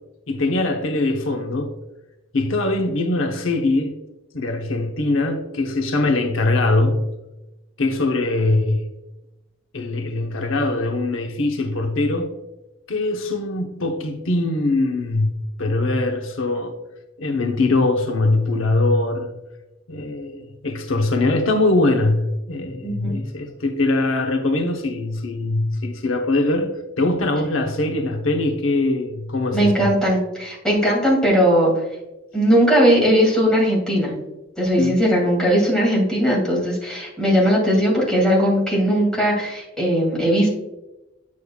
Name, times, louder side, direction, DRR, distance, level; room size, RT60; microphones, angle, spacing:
voice 1, 0.3-1.7 2.3-3.9 4.3-7.1 7.8-8.9 9.7-12.3 12.9-16.8 17.2-19.3 19.9-29.9 34.8-35.0, left 2 dB, 80° left, 0.8 m, -22 dB
voice 2, 22.8-23.2 29.5-31.7 32.3-34.1 34.6-40.5, equal, 5° left, 2.4 m, -18 dB
8.4 x 6.5 x 2.3 m
head